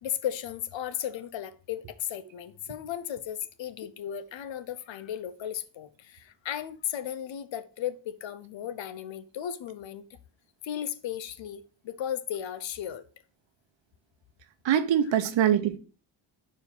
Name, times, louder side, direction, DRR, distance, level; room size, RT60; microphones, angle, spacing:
voice 1, 0.0-10.0 10.6-13.0, left 10 dB, 65° left, 0.7 m, -35 dB
voice 2, 14.6-15.8, right 10 dB, 65° right, 0.9 m, -23 dB
4.7 x 4.6 x 5.3 m
cardioid pair, 110°, 48 cm